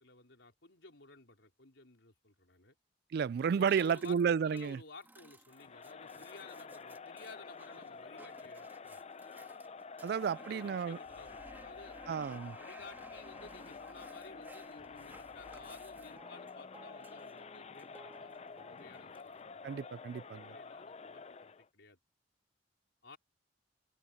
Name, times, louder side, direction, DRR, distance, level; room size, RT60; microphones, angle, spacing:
voice 1, 0.0-2.8 3.5-9.0 10.3-12.0 12.4-19.7 20.3-22.0 23.0-23.2, left 3 dB, 70° left, 4.6 m, -55 dB
voice 2, 3.1-4.8 10.0-11.0 12.1-12.6 19.6-20.5, right 7 dB, 55° right, 0.3 m, -32 dB
sound 1, 3.4-19.4, right 1 dB, 10° right, 2.4 m, -58 dB
Crowd, 5.5-21.7, left 5 dB, 35° left, 0.5 m, -49 dB
sound 2, 11.0-16.2, right 1 dB, 75° right, 4.4 m, -63 dB
open air
head